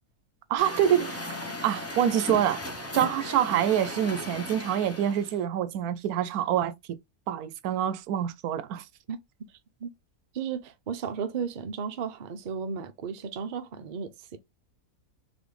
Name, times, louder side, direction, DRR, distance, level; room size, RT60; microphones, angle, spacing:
voice 1, 0.5-1.2 1.6-2.6 2.9-6.7 7.3-8.8, right 10 dB, 75° right, 1.0 m, -26 dB
Truck, 0.6-5.4, left 1 dB, 20° left, 0.4 m, -36 dB
voice 2, 10.3-14.4, right 6 dB, 60° right, 0.5 m, -34 dB
4.1 x 3.0 x 3.2 m
omnidirectional pair, 1.7 m